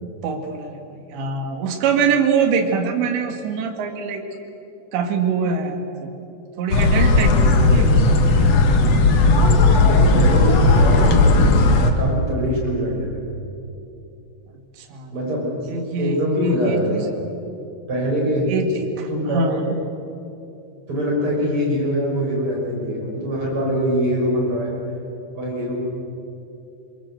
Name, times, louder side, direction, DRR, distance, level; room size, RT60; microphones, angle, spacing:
voice 1, 0.0-4.3 4.9-6.1 6.6-8.1 8.4-8.6 14.8-15.1 15.7-16.8 18.5-19.8, right 5 dB, 70° right, 3 dB, 4.1 m, -24 dB
sound 1, 6.7-11.9, left 2 dB, 65° left, 1.6 m, -15 dB
voice 2, 9.8-13.3 15.1-15.5 16.0-17.0 17.9-18.5 19.1-19.6 20.9-24.7 25.3-25.8, equal, 30° right, -3 dB, 6.6 m, -23 dB
24.5 x 22.0 x 7.9 m, 2.7 s
omnidirectional pair, 5.4 m